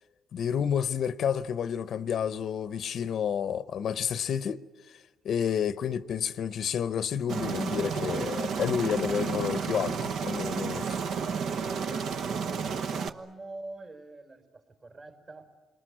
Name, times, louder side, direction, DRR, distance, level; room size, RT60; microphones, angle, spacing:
voice 1, 0.3-4.6 5.2-10.9, left 8 dB, 65° left, 0.8 m, -30 dB
Aircraft, 7.3-13.1, right 6 dB, 70° right, 1.0 m, -31 dB
voice 2, 11.5-15.5, right 2 dB, 45° right, 4.2 m, -45 dB
28.5 x 20.5 x 9.8 m
cardioid pair, 90°, 0 cm